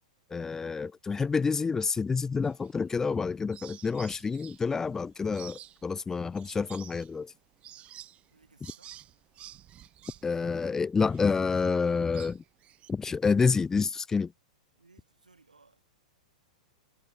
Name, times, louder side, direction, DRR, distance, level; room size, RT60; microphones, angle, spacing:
voice 1, 0.3-7.3 10.2-12.4 12.9-14.3, left 5 dB, 10° left, 0.4 m, -28 dB
sound 1, 2.4-3.2 3.5-12.9, right 12 dB, 30° right, 4.8 m, -51 dB
voice 2, 8.3-9.0 14.8-15.9, right 3 dB, 85° right, 4.9 m, -62 dB
figure-of-eight pair, 100°, 4 cm